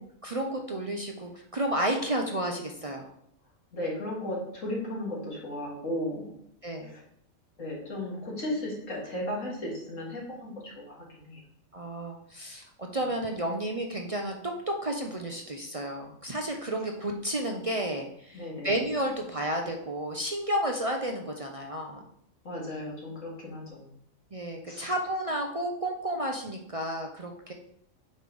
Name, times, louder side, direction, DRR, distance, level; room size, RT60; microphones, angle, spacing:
voice 1, 0.2-3.1 6.6-6.9 11.7-14.4 14.7-22.0 24.3-27.5, right 1 dB, 45° right, 2 dB, 0.4 m, -32 dB
voice 2, 3.7-6.3 6.9-7.0 7.6-11.4 18.3-18.8 22.4-23.9 24.6-24.9, left 1 dB, 65° left, -4 dB, 2.5 m, -35 dB
8.2 x 3.3 x 5.3 m, 0.72 s
omnidirectional pair, 1.4 m